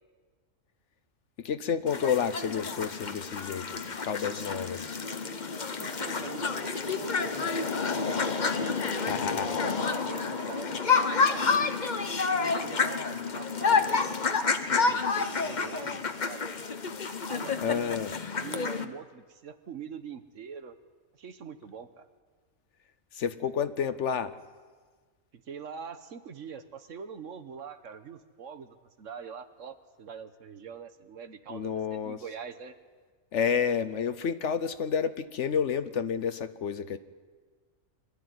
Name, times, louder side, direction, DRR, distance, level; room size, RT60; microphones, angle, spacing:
voice 1, 1.4-5.0 8.9-9.5 17.6-18.2 23.1-24.4 31.5-32.2 33.3-37.0, left 7 dB, 65° left, 12 dB, 1.1 m, -30 dB
sound 1, 1.9-18.8, left 5 dB, 35° left, 1.0 m, -29 dB
voice 2, 5.8-13.9 14.4-15.0 15.4-16.5 17.3-18.1 18.4-20.7 21.1-22.1 25.3-32.8, right 6 dB, 65° right, 10 dB, 1.4 m, -44 dB
24.5 x 13.0 x 9.4 m, 1.5 s
omnidirectional pair, 1.4 m